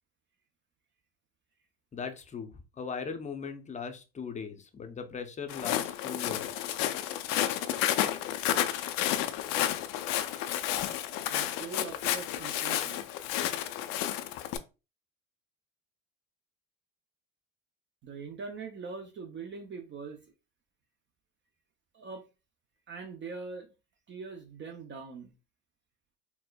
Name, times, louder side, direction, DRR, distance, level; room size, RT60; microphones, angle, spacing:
voice 1, 1.9-6.8, left 5 dB, 20° left, 0.6 m, -39 dB
Walk footsteps, 5.5-14.6, left 12 dB, 70° left, 0.5 m, -31 dB
voice 2, 11.3-13.0 18.0-20.2 21.9-22.3 22.9-23.7 24.1-25.3, right 4 dB, 35° right, 0.5 m, -42 dB
4.2 x 2.1 x 2.3 m
supercardioid pair, 85°, 35 cm